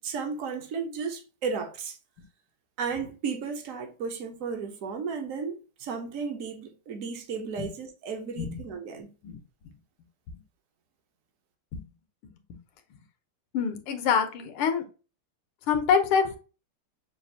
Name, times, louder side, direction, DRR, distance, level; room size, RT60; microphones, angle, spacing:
voice 1, 0.0-2.0 2.8-9.1, right 5 dB, 70° right, 0.7 m, -34 dB
voice 2, 13.5-14.8 15.7-16.4, left 6 dB, 85° left, 1.7 m, -25 dB
6.4 x 2.4 x 2.7 m
omnidirectional pair, 2.4 m